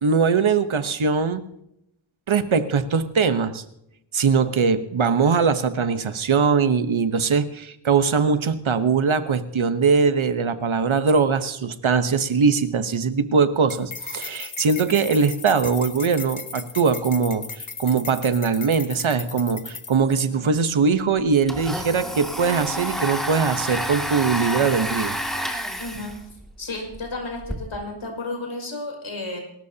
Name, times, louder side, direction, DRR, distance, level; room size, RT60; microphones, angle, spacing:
voice 1, 0.0-1.5 2.3-3.6 4.1-25.2, right 5 dB, 70° right, 10 dB, 1.1 m, -21 dB
sound 1, 13.7-20.1, left 5 dB, 40° left, 1.0 m, -37 dB
voice 2, 20.1-20.5 25.8-26.1 26.6-29.4, left 2 dB, 65° left, 1 dB, 5.6 m, -33 dB
Domestic sounds home sounds, 20.5-20.6 20.9-27.6, equal, ahead, 2.3 m, -30 dB
27.5 x 13.5 x 2.9 m, 0.79 s
wide cardioid pair, 85°, 50 cm